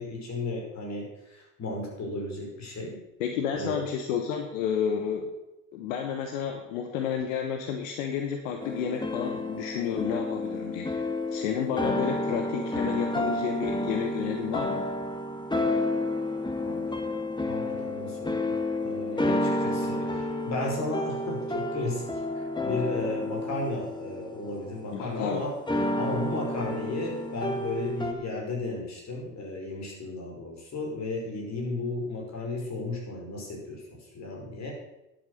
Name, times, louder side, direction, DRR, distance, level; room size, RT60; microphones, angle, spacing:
voice 1, 0.0-3.0 3.5-3.8 16.6-17.0 17.5-22.0 22.4-25.5 26.0-34.7, left 2 dB, 45° left, -1 dB, 5.3 m, -34 dB
voice 2, 3.2-5.3 5.7-14.9 19.1-19.7 24.9-25.5, left 8 dB, 80° left, 4 dB, 1.3 m, -31 dB
sound 1, 8.6-25.0 25.7-28.1, left 1 dB, 10° left, 1.9 m, -30 dB
11.0 x 9.1 x 6.7 m, 0.93 s
hypercardioid pair, 60°, 38 cm